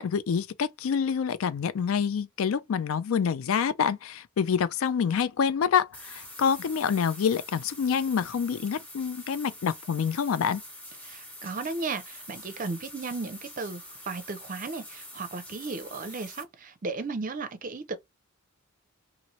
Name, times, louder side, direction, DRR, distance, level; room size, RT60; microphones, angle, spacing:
voice 1, 0.0-10.6, left 7 dB, 70° left, 0.4 m, -27 dB
sound 1, 5.9-16.4, left 1 dB, 5° left, 1.0 m, -45 dB
voice 2, 11.0-18.0, right 3 dB, 40° right, 0.5 m, -35 dB
2.8 x 2.6 x 3.0 m
head